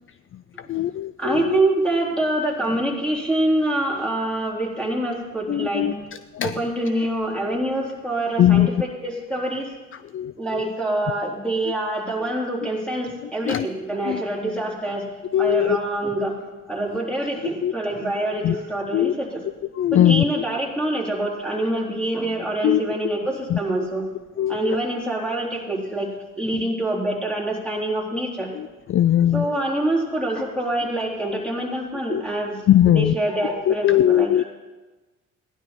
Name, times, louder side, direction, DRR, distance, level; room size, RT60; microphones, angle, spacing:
voice 1, 0.6-1.6 5.5-5.9 6.3-6.6 8.4-8.7 9.9-10.7 13.2-13.7 14.0-14.2 15.3-15.8 17.6-17.7 18.4-18.6 18.9-19.1 19.7-20.4 22.6-22.8 23.5-23.9 24.4-24.8 26.5-26.6 28.5-29.5 32.1-32.2 32.7-33.1 33.7-34.4, left 11 dB, 45° left, 14 dB, 0.4 m, -20 dB
voice 2, 1.2-6.1 6.4-8.7 9.0-9.7 10.4-15.1 15.4-16.4 16.7-19.4 19.9-24.0 24.5-26.1 26.4-28.5 29.3-32.6 32.9-34.4, right 1 dB, 5° left, -2 dB, 3.7 m, -25 dB
16.0 x 11.0 x 4.5 m, 1.2 s
cardioid pair, 90°, 30 cm